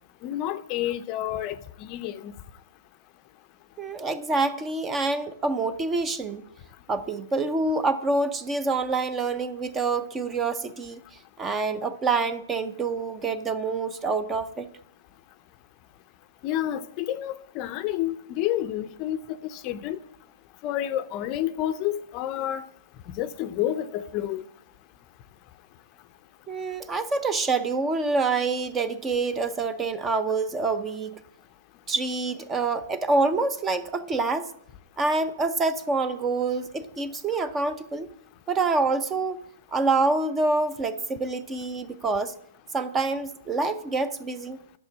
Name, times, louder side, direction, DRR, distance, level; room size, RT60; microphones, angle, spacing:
voice 1, 0.2-2.3 16.4-20.0 20.6-22.7 23.1-24.4, left 12 dB, 35° left, 0.6 m, -29 dB
voice 2, 3.8-6.4 6.9-11.0 11.4-14.7 26.5-31.2 31.9-34.5 35.0-38.1 38.5-39.4 39.7-42.3 42.7-44.6, right 3 dB, 15° right, 0.7 m, -26 dB
11.0 x 6.8 x 7.3 m
hypercardioid pair, 140°, 0 cm